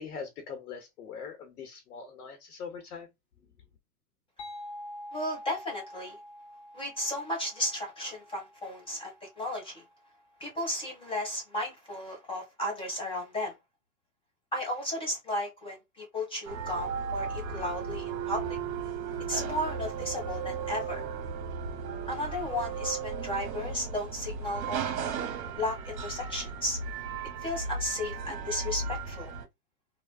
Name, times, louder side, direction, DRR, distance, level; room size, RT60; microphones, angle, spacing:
voice 1, 0.0-3.1, left 6 dB, 65° left, 0.9 m, -42 dB
sound 1, 4.4-9.9, left 1 dB, 40° left, 0.9 m, -47 dB
voice 2, 5.1-6.2 6.7-9.8 10.4-13.5 14.5-18.6 19.3-21.0 22.1-25.0 25.6-26.8 27.4-29.3, left 1 dB, 10° left, 1.6 m, -34 dB
sound 2, 16.5-29.5, right 5 dB, 60° right, 1.0 m, -35 dB
3.3 x 2.2 x 2.3 m
hypercardioid pair, 115°, 48 cm